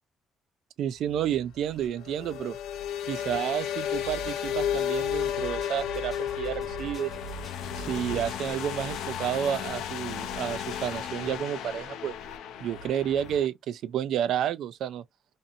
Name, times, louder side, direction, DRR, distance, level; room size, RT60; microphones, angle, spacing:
voice 1, 0.8-2.6 3.1-7.1 7.8-12.1 12.6-15.0, right 10 dB, 65° right, 0.3 m, -30 dB
sound 1, 1.0-13.5, left 10 dB, 85° left, 0.4 m, -34 dB
sound 2, 3.9-9.2, right 5 dB, 20° left, 1.3 m, -43 dB
2.6 x 2.6 x 2.5 m
cardioid pair, 170°, 0 cm